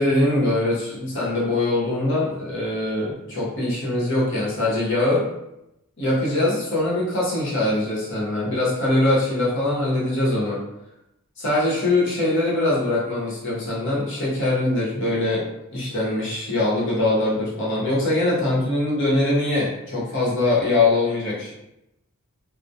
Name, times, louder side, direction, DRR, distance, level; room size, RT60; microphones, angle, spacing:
voice 1, 0.0-5.3 6.0-10.6 11.4-15.4 15.7-21.5, left 2 dB, 55° left, -6 dB, 0.8 m, -22 dB
2.2 x 2.1 x 2.7 m, 0.85 s
head